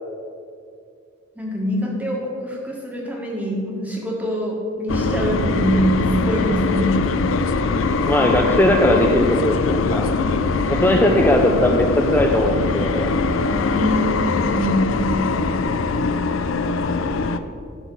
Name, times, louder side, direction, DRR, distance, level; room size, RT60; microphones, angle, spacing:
voice 1, 1.3-7.0 13.5-15.3, equal, 10° right, -2 dB, 1.7 m, -24 dB
sound 1, 4.9-17.4, left 4 dB, 85° left, 0.5 m, -22 dB
voice 2, 8.0-10.1 10.7-13.1, left 1 dB, 10° left, 2 dB, 0.5 m, -19 dB
12.0 x 4.2 x 7.0 m, 2.4 s
head